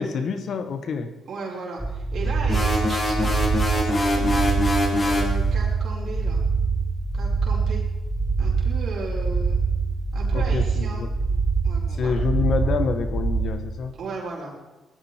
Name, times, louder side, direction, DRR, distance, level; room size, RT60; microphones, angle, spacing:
voice 1, 0.0-1.1 10.3-11.1 11.9-14.0, left 5 dB, 60° left, 8 dB, 1.5 m, -27 dB
voice 2, 1.3-4.4 5.0-6.4 7.1-7.8 8.4-9.6 10.1-11.0 11.6-12.1 14.0-14.6, right 3 dB, 60° right, -3 dB, 4.8 m, -36 dB
sound 1, 1.8-13.4, right 4 dB, 5° right, 3.4 m, -24 dB
sound 2, 2.5-5.3, left 1 dB, 30° left, 4.5 m, -23 dB
18.5 x 14.0 x 4.6 m, 1.2 s
cardioid pair, 110°, 0 cm